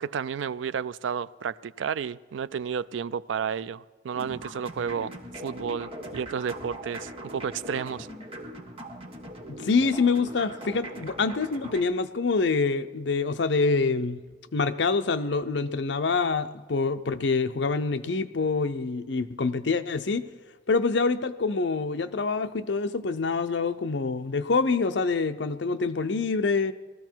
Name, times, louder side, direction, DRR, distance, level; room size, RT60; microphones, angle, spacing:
voice 1, 0.0-5.1 5.4-8.1, right 7 dB, 85° right, 0.4 m, -31 dB
sound 1, 4.1-11.8, equal, 30° right, 1.6 m, -41 dB
voice 2, 9.5-14.2 14.5-20.3 20.7-26.7, left 4 dB, 70° left, 0.6 m, -26 dB
19.5 x 14.0 x 4.6 m
head